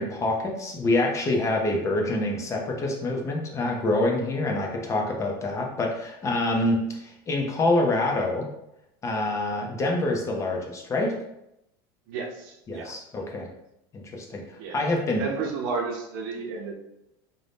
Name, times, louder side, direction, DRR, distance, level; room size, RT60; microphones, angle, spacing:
voice 1, 0.0-8.5 9.0-11.2 12.7-13.5 13.9-15.2, left 2 dB, 25° left, 0 dB, 0.5 m, -26 dB
voice 2, 12.1-12.9 14.6-14.9 15.2-16.7, right 4 dB, 70° right, 1 dB, 0.6 m, -32 dB
2.6 x 2.1 x 3.3 m, 0.84 s
supercardioid pair, 130°, 13 cm